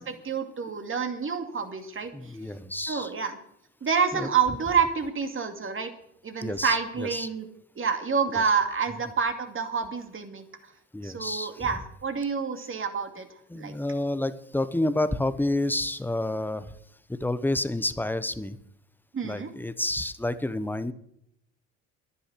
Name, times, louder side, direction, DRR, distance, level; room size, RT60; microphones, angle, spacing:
voice 1, 0.0-2.3 2.9-3.4 3.8-5.9 6.2-7.5 7.8-10.4 11.0-13.7 19.1-19.5, right 6 dB, 35° right, 6 dB, 2.5 m, -28 dB
voice 2, 2.1-3.1 4.1-4.3 6.4-7.3 10.9-11.7 13.5-16.7 17.1-18.6 19.2-20.9, left 1 dB, 5° left, 14 dB, 0.9 m, -29 dB
11.0 x 10.0 x 8.4 m, 0.75 s
hypercardioid pair, 70°, 38 cm